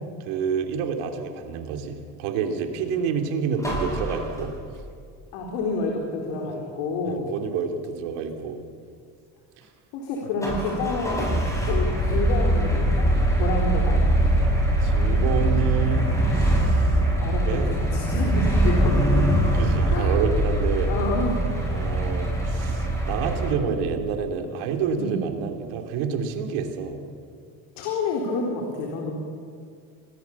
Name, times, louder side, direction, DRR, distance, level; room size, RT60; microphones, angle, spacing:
voice 1, 0.2-4.5 7.1-8.6 14.8-17.0 17.4-17.7 19.5-20.9 21.7-27.0, right 6 dB, 80° right, 5 dB, 3.2 m, -28 dB
sound 1, 3.6-4.9 10.4-23.5, right 1 dB, 5° left, 7.9 m, -22 dB
voice 2, 5.3-7.3 9.9-14.2 17.2-19.3 19.9-20.1 20.9-21.5 25.0-25.2 27.8-29.1, left 3 dB, 80° left, 0 dB, 4.1 m, -29 dB
26.0 x 19.5 x 7.2 m, 2.2 s
supercardioid pair, 95°, 47 cm